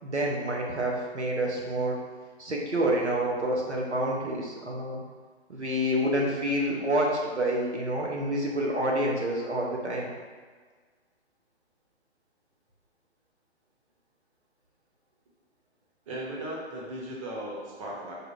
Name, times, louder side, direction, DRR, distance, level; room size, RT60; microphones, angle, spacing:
voice 1, 0.0-2.0 2.4-5.0 5.5-10.1, right 1 dB, 90° right, -2 dB, 0.9 m, -28 dB
voice 2, 16.1-18.1, right 1 dB, 30° right, -4 dB, 0.8 m, -37 dB
4.6 x 2.1 x 3.2 m, 1.5 s
figure-of-eight pair, 130°, 33 cm